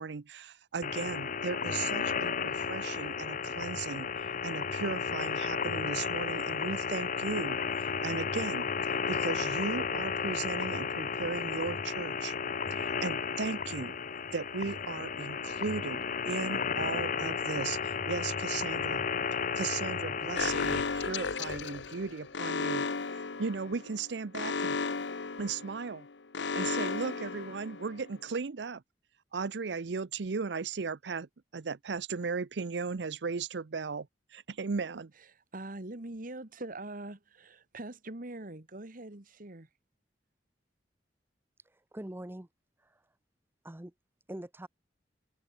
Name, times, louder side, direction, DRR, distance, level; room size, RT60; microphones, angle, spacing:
voice 1, 0.0-12.4 12.7-14.0 14.3-19.0 19.5-24.8 25.4-26.1 26.5-28.8 29.3-35.1, right 5 dB, 75° right, 0.6 m, -37 dB
sound 1, 0.8-20.8, left 6 dB, 50° left, 0.9 m, -33 dB
Alarm, 20.4-28.1, left 4 dB, 85° left, 1.0 m, -34 dB
voice 2, 35.2-39.7, right 2 dB, 50° right, 1.8 m, -43 dB
voice 3, 41.6-42.5 42.8-43.0 43.6-43.9 44.3-44.7, right 1 dB, 15° right, 0.7 m, -43 dB
head